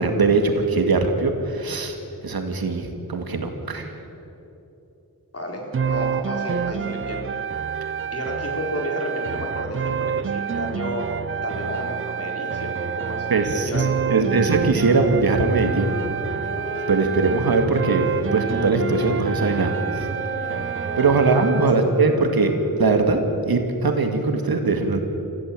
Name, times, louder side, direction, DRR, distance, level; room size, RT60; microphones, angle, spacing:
voice 1, 0.0-2.0 2.2-3.9 13.3-15.9 16.9-20.1 21.0-25.0, right 3 dB, 75° right, 5 dB, 2.3 m, -21 dB
voice 2, 5.3-7.3 8.1-11.1 11.4-13.3 13.5-14.5 21.2-21.3 21.7-21.8, left 1 dB, 40° left, 0 dB, 4.8 m, -32 dB
sound 1, 5.7-21.8, right 7 dB, 35° right, 0.5 m, -28 dB
sound 2, 15.5-23.3, equal, 5° left, 7.2 m, -34 dB
25.5 x 15.5 x 7.8 m, 3.0 s
wide cardioid pair, 65°, 37 cm